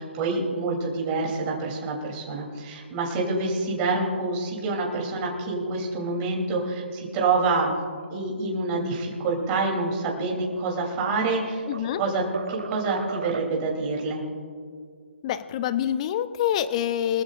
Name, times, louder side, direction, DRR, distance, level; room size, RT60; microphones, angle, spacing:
voice 1, 0.0-7.7 8.1-11.6 12.0-14.2, right 3 dB, 25° right, -2 dB, 3.2 m, -27 dB
sound 1, 10.7-12.0 12.3-13.8, right 4 dB, 70° right, 1.2 m, -36 dB
voice 2, 11.7-12.0 15.2-17.2, left 10 dB, 30° left, 13 dB, 0.7 m, -26 dB
24.0 x 14.5 x 2.5 m, 2.1 s
hypercardioid pair, 150°, 7 cm